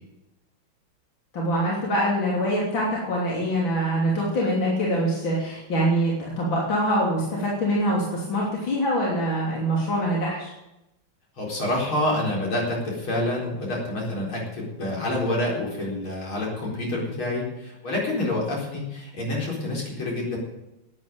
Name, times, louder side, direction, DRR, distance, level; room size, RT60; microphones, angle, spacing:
voice 1, 1.3-10.5, equal, 65° left, -5 dB, 4.0 m, -24 dB
voice 2, 11.4-20.4, left 1 dB, 85° left, -3 dB, 5.1 m, -27 dB
12.5 x 9.3 x 9.1 m, 0.93 s
omnidirectional pair, 2.2 m